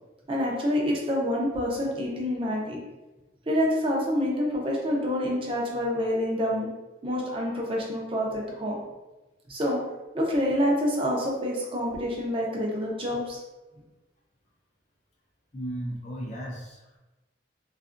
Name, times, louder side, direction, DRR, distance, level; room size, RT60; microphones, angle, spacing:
voice 1, 0.3-2.8 3.5-6.7 7.0-8.8 9.5-9.8 10.1-13.4, equal, 30° right, -3 dB, 0.6 m, -27 dB
voice 2, 15.5-17.0, right 1 dB, 40° left, -2 dB, 0.6 m, -35 dB
2.6 x 2.4 x 2.4 m, 1.1 s
head